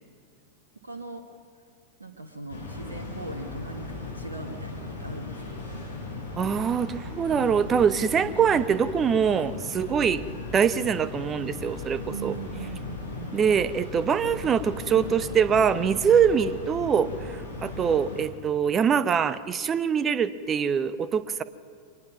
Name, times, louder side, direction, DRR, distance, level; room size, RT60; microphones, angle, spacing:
voice 1, 0.8-1.2 2.0-5.7 12.1-13.4, right 4 dB, 80° right, 5 dB, 1.3 m, -40 dB
sound 1, 2.5-18.2, left 3 dB, 75° left, 5.6 m, -37 dB
voice 2, 6.4-10.2 10.5-12.4 13.3-21.4, right 7 dB, 25° right, 15 dB, 0.8 m, -24 dB
24.0 x 20.5 x 6.0 m, 2.2 s
figure-of-eight pair, 90°, 0 cm